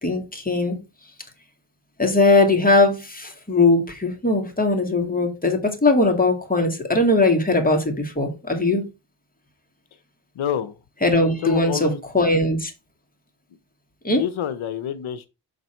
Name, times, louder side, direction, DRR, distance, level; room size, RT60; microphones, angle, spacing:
voice 1, 0.0-0.8 2.0-8.9 11.0-12.7 14.0-14.2, left 2 dB, 20° left, 2.0 m, -20 dB
voice 2, 10.4-10.7 11.4-12.0 14.2-15.3, left 10 dB, 85° left, 0.7 m, -27 dB
6.6 x 4.0 x 4.4 m
cardioid pair, 80°, 47 cm